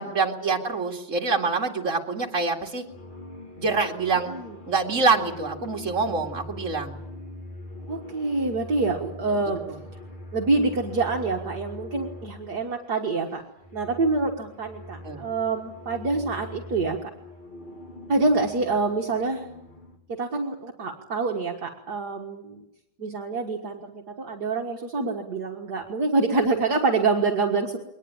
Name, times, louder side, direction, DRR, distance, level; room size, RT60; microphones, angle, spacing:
voice 1, 0.0-2.8 3.6-4.3 4.7-6.9 9.7-9.8 15.0-15.2, right 4 dB, 40° right, 2 dB, 2.8 m, -25 dB
sound 1, 2.1-2.4 2.8-12.9 13.4-20.0, left 1 dB, 25° left, 2.7 m, -42 dB
voice 2, 7.9-9.6 10.3-13.4 13.7-17.0 18.1-19.5 20.1-22.6 23.0-27.8, right 3 dB, 60° right, 1 dB, 2.2 m, -26 dB
22.5 x 19.5 x 8.8 m, 0.82 s
omnidirectional pair, 2.0 m